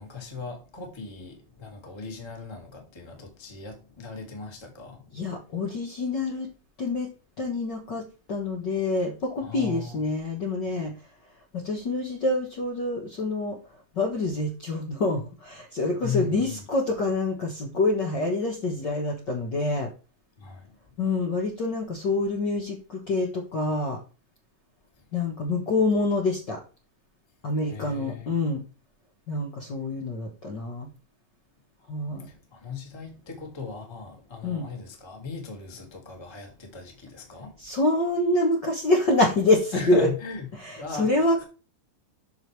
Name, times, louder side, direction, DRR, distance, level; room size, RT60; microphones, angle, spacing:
voice 1, 0.0-5.4 9.4-10.1 16.0-16.6 20.4-20.7 25.0-25.1 27.7-28.3 32.2-37.6 39.7-40.5 40.7-41.4, left 5 dB, 10° left, 1.5 m, -38 dB
voice 2, 5.1-6.5 6.8-7.1 7.4-10.9 11.5-13.6 13.9-19.9 21.0-24.0 25.1-26.6 27.4-28.6 29.3-30.9 31.9-32.3 34.4-34.7 37.6-40.1 40.6-41.4, left 2 dB, 45° left, 1.5 m, -26 dB
7.9 x 6.5 x 3.4 m
omnidirectional pair, 3.8 m